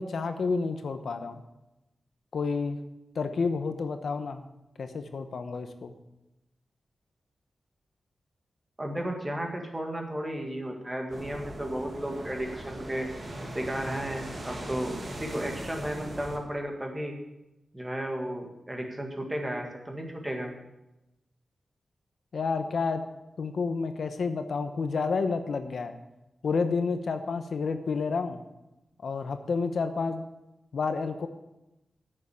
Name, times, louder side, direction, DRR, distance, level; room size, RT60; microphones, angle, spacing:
voice 1, 0.0-1.4 2.3-2.8 3.1-4.4 4.8-5.9 22.3-23.0 23.4-26.0 26.4-28.4 29.0-30.2 30.7-31.3, left 4 dB, 70° left, 8 dB, 0.9 m, -30 dB
voice 2, 8.8-13.1 13.5-17.1 17.7-20.5, right 1 dB, 15° right, 2 dB, 2.0 m, -34 dB
sound 1, 11.1-16.4, right 1 dB, 40° right, 2.3 m, -40 dB
9.1 x 6.8 x 8.5 m, 0.95 s
wide cardioid pair, 115°, 0 cm